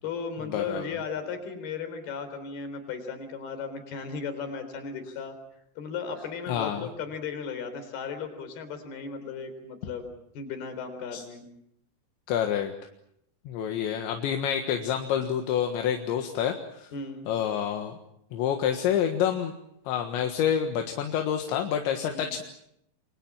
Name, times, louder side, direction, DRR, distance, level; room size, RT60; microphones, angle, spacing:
voice 1, 0.0-5.4 5.8-10.1 10.4-11.5 16.9-17.3 22.0-22.4, left 5 dB, 60° left, 8 dB, 5.6 m, -36 dB
voice 2, 0.5-0.9 6.5-6.9 11.1-11.2 12.3-12.7 13.5-16.9 17.3-17.9 18.3-19.5 19.9-22.4, left 9 dB, 75° left, 4 dB, 3.8 m, -28 dB
28.5 x 24.5 x 7.4 m, 0.77 s
omnidirectional pair, 5.3 m